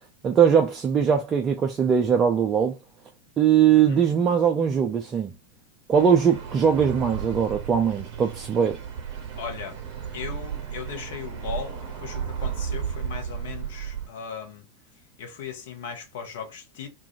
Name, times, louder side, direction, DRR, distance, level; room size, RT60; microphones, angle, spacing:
voice 1, 0.2-2.7 3.4-5.3 5.9-8.8, right 7 dB, 25° right, 0.4 m, -21 dB
voice 2, 3.7-4.0 9.3-9.8 10.1-14.7 15.2-16.9, left 7 dB, 55° left, 0.7 m, -37 dB
sound 1, 5.9-14.1, right 8 dB, 45° right, 0.7 m, -34 dB
2.4 x 2.1 x 2.7 m
figure-of-eight pair, 90°, 0 cm